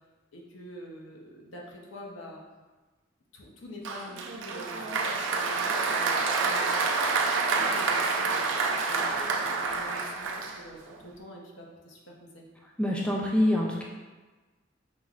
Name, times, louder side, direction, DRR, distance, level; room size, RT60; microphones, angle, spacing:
voice 1, 0.3-2.4 3.3-12.5, equal, 85° left, -1 dB, 0.8 m, -46 dB
Applause, 3.8-11.0, right 4 dB, 75° right, 0.5 m, -28 dB
voice 2, 12.8-13.8, left 1 dB, 5° left, -3 dB, 0.4 m, -25 dB
5.2 x 3.1 x 2.4 m, 1.3 s
head